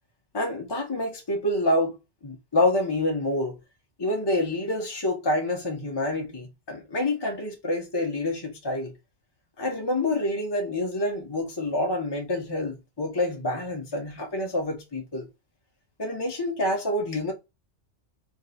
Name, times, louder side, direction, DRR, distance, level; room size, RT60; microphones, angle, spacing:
voice 1, 0.3-3.6 4.0-8.9 9.6-15.3 16.0-17.3, left 1 dB, 25° left, 0.9 m, -27 dB
3.3 x 3.3 x 4.2 m
omnidirectional pair, 1.2 m